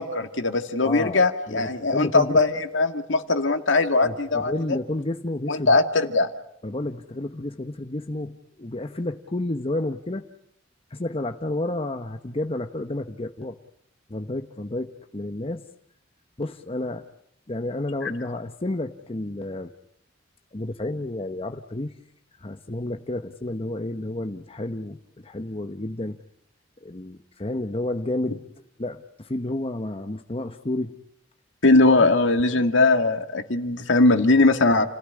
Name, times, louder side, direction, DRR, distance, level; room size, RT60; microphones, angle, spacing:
voice 1, 0.0-4.8 5.5-6.3 18.0-18.1 31.6-34.8, left 2 dB, 70° left, 7 dB, 2.2 m, -20 dB
voice 2, 0.8-1.2 1.5-2.6 4.0-5.8 6.6-10.2 10.9-13.6 14.1-15.6 16.4-17.1 17.5-19.7 20.5-21.9 22.4-26.2 26.8-28.4 28.8-31.0 31.9-32.1, left 1 dB, 30° left, 6 dB, 1.0 m, -31 dB
30.0 x 17.0 x 9.7 m, 0.74 s
head